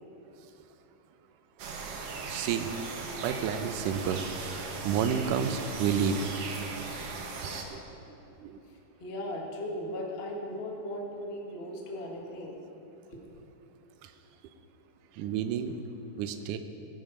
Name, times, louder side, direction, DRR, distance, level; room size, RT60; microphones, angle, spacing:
sound 1, 1.6-7.6, right 4 dB, 60° right, 1.7 m, -38 dB
voice 1, 2.3-2.7 3.2-4.3 4.8-6.2 7.7-7.8 8.4-8.6 15.2-15.8 16.2-16.6, right 7 dB, 75° right, 8 dB, 2.1 m, -30 dB
voice 2, 8.7-12.6 13.1-13.2, left 1 dB, 65° left, 0 dB, 0.6 m, -37 dB
18.0 x 11.0 x 5.0 m, 3.0 s
omnidirectional pair, 4.1 m